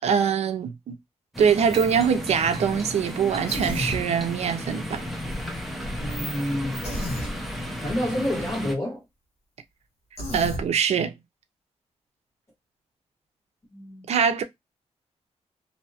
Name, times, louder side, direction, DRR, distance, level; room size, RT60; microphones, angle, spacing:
voice 1, 0.0-1.0 1.4-5.0 10.3-11.1 14.1-14.4, right 7 dB, 65° right, 0.5 m, -23 dB
sound 1, 1.3-8.8, equal, ahead, 0.5 m, -33 dB
Human voice, 3.5-4.0 6.8-7.3 10.2-10.6, left 1 dB, 65° left, 1.1 m, -31 dB
voice 2, 5.9-6.8 7.8-9.0 13.7-14.1, left 1 dB, 25° left, 1.3 m, -29 dB
2.7 x 2.2 x 2.7 m
wide cardioid pair, 170°, 12 cm